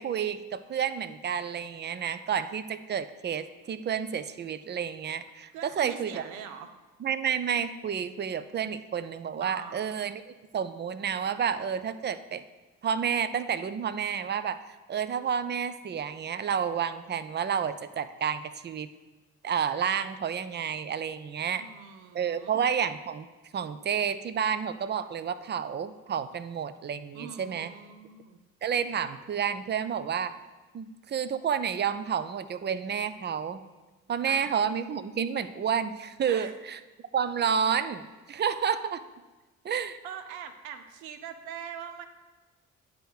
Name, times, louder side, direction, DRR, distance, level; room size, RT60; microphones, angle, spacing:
voice 1, 0.0-6.2 7.0-10.2 10.5-12.4 12.8-14.6 14.9-18.9 19.4-21.7 22.1-23.3 23.5-27.7 28.6-30.3 30.7-33.6 34.1-36.8 37.1-38.0 38.3-39.0 39.6-40.0, right 7 dB, 25° right, 13 dB, 0.4 m, -30 dB
voice 2, 5.5-6.7 9.4-10.1 21.4-22.6 27.1-28.4 34.3-34.5 36.3-36.5 40.0-42.0, right 8 dB, 80° right, 9 dB, 0.7 m, -43 dB
9.7 x 3.4 x 4.8 m, 1.2 s
figure-of-eight pair, 40°, 42 cm